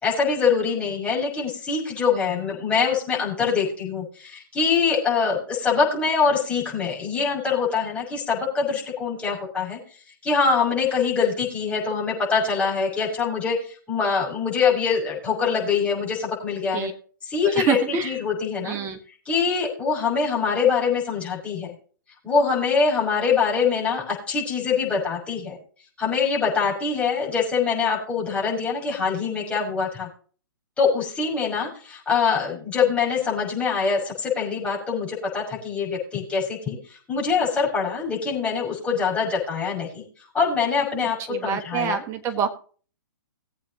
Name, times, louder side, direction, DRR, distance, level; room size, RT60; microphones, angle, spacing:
voice 1, 0.0-9.8 10.2-13.6 13.9-16.9 17.2-18.8 19.3-21.7 22.2-25.6 26.0-30.1 30.8-36.8 37.1-40.0 40.3-41.2 41.4-42.0, left 5 dB, 10° left, -4 dB, 6.2 m, -24 dB
voice 2, 17.5-18.1 18.6-19.0 41.3-42.5, right 7 dB, 25° right, 7 dB, 1.2 m, -26 dB
20.0 x 8.4 x 2.9 m, 0.42 s
figure-of-eight pair, 120°, 11 cm